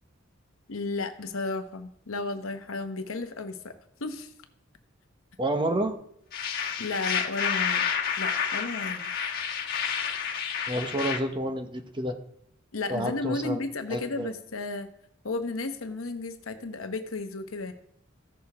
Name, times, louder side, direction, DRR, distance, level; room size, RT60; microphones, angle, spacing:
voice 1, 0.7-3.7 4.0-4.3 6.8-7.9 8.2-9.1 12.7-14.9 15.2-17.7, left 3 dB, 70° left, 7 dB, 0.9 m, -33 dB
voice 2, 5.4-6.0 10.7-12.2 12.9-13.6 13.9-14.3, right 1 dB, 25° right, 6 dB, 0.9 m, -29 dB
sound 1, 6.3-11.2, left 7 dB, 50° left, 1.3 m, -29 dB
15.0 x 6.7 x 3.5 m, 0.69 s
head